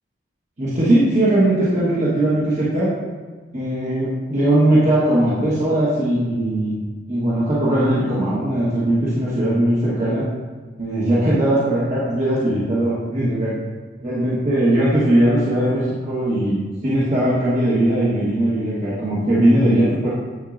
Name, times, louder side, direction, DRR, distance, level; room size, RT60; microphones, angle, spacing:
voice 1, 0.6-2.9 3.5-6.8 7.1-10.2 10.8-13.5 14.0-20.1, right 1 dB, 40° right, -9 dB, 1.3 m, -19 dB
9.1 x 4.5 x 2.5 m, 1.4 s
head